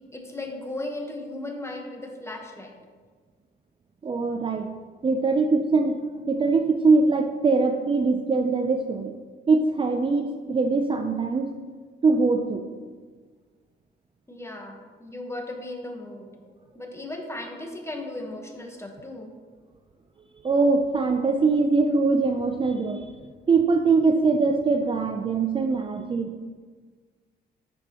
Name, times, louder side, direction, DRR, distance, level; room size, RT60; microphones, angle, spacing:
voice 1, 0.1-2.7 14.3-16.4 16.7-19.4, left 2 dB, 15° left, 2 dB, 1.2 m, -36 dB
voice 2, 4.0-4.7 5.0-9.1 9.5-11.5 12.0-12.6 20.4-23.0 23.5-26.3, right 4 dB, 25° right, 4 dB, 0.5 m, -22 dB
9.7 x 6.1 x 3.0 m, 1.5 s
cardioid pair, 90°, 20 cm